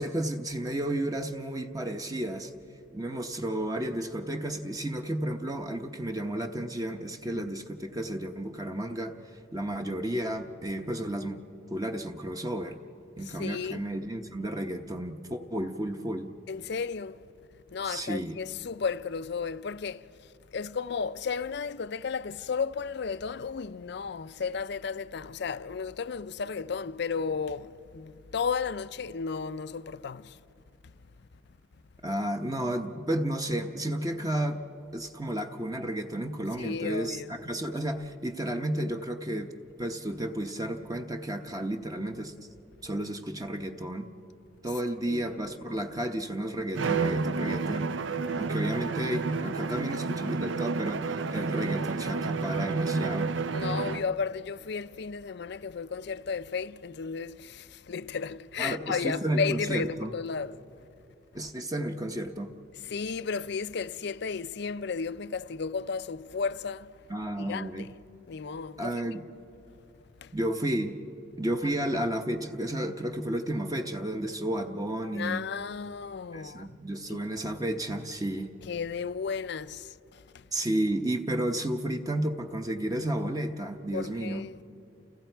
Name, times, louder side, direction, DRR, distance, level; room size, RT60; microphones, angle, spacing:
voice 1, 0.0-2.5 2.9-9.1 9.5-11.4 11.7-12.8 13.2-16.3 17.8-18.4 32.0-34.6 34.9-39.5 39.8-42.3 42.8-44.1 44.6-47.9 48.4-53.3 58.6-60.1 61.3-62.5 67.1-67.9 68.8-69.2 70.3-71.0 71.4-75.4 76.3-78.5 80.5-84.4, right 1 dB, 20° right, 0.8 m, -32 dB
voice 2, 13.2-13.9 16.5-17.2 17.7-30.4 30.8-30.9 36.6-37.3 45.0-45.3 53.5-60.6 62.7-67.0 67.4-68.0 68.3-69.0 70.2-70.4 75.1-76.8 77.1-77.2 78.6-80.5 83.9-84.6, left 5 dB, 60° left, 0.5 m, -34 dB
Bowed string instrument, 46.7-54.2, right 4 dB, 80° right, 0.6 m, -30 dB
30.0 x 29.5 x 4.6 m
head